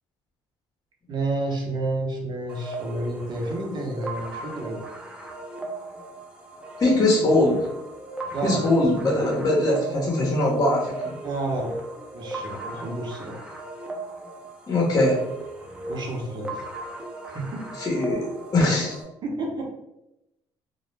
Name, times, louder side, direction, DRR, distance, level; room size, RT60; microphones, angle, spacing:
voice 1, 1.1-4.8 6.9-7.3 8.3-8.8 9.1-9.2 11.2-11.7 12.1-13.4 15.9-16.6 17.3-17.7 19.2-19.7, right 2 dB, 50° right, 0 dB, 0.7 m, -30 dB
sound 1, 2.5-19.0, right 2 dB, 10° right, 0.5 m, -37 dB
voice 2, 6.8-7.6 8.4-11.1 14.7-15.2 17.8-18.3 18.5-19.0, left 2 dB, 35° left, -3 dB, 0.8 m, -21 dB
2.1 x 2.0 x 3.1 m, 0.89 s
supercardioid pair, 85°, 10 cm